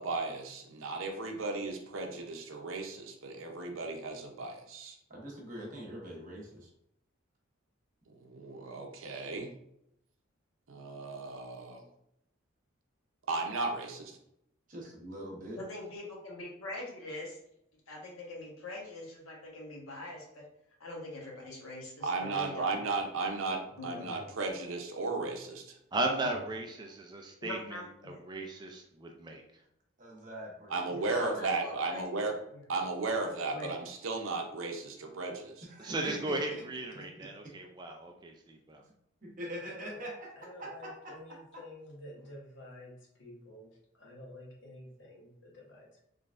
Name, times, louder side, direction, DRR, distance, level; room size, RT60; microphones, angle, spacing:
voice 1, 0.0-5.0 8.2-9.5 10.7-11.8 13.3-14.1 22.0-25.8 30.7-32.4 32.7-35.7, right 3 dB, 75° right, 3 dB, 0.7 m, -35 dB
voice 2, 5.1-6.7 14.7-15.6 30.0-30.7 35.6-36.6 36.9-37.0 37.4-37.5 39.2-40.3 40.6-41.1, equal, 40° right, -2 dB, 1.0 m, -43 dB
voice 3, 15.6-17.4 17.9-20.4 20.8-22.8 23.8-24.3 26.2-26.3 27.4-28.2 30.9-32.6 33.1-33.2 33.5-33.7, left 2 dB, 90° left, -2 dB, 1.2 m, -43 dB
voice 4, 25.9-29.4 35.8-38.8, right 2 dB, 20° right, 2 dB, 0.3 m, -36 dB
voice 5, 39.6-40.0 40.4-43.7 43.9-46.0, left 1 dB, 60° left, -1 dB, 1.0 m, -50 dB
3.8 x 3.2 x 2.5 m, 0.77 s
head